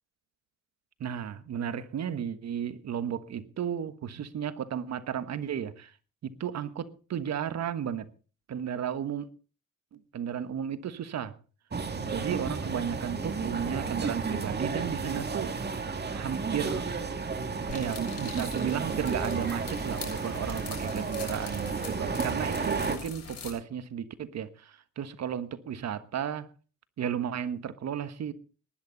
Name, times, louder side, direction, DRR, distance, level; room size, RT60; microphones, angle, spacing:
voice 1, 1.0-5.9 6.2-8.1 8.5-9.3 9.9-11.3 11.9-15.6 16.1-16.9 17.6-26.5 27.0-28.3, right 8 dB, 60° right, 1.5 m, -34 dB
sound 1, 11.7-23.0, right 4 dB, 35° right, 2.4 m, -32 dB
sound 2, 17.7-23.5, left 4 dB, 55° left, 7.0 m, -42 dB
19.5 x 10.5 x 4.1 m
cardioid pair, 90°, 30 cm